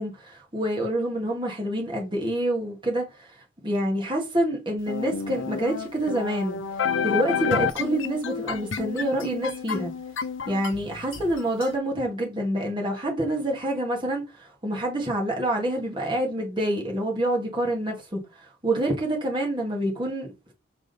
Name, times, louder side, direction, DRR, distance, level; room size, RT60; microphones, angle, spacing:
voice 1, 0.0-3.3 3.6-6.6 7.0-9.9 10.5-20.5, right 1 dB, 25° right, 1.7 m, -27 dB
sound 1, 4.9-11.7, left 6 dB, 65° left, 0.7 m, -30 dB
7.4 x 3.6 x 4.0 m
head